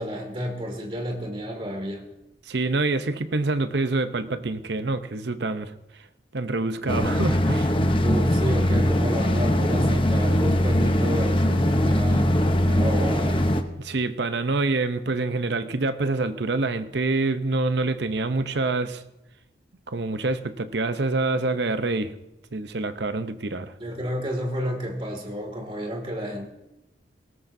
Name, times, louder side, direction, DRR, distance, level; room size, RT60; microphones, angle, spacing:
voice 1, 0.0-2.0 8.0-12.3 12.6-13.5 23.8-26.5, equal, 30° right, 3 dB, 2.2 m, -31 dB
voice 2, 2.5-5.7 6.3-7.7 13.8-19.0 19.9-22.1 22.5-23.7, right 3 dB, 60° right, 10 dB, 0.7 m, -26 dB
sound 1, 6.9-13.6, left 1 dB, 25° left, 0.7 m, -21 dB
19.0 x 17.5 x 2.7 m, 0.91 s
head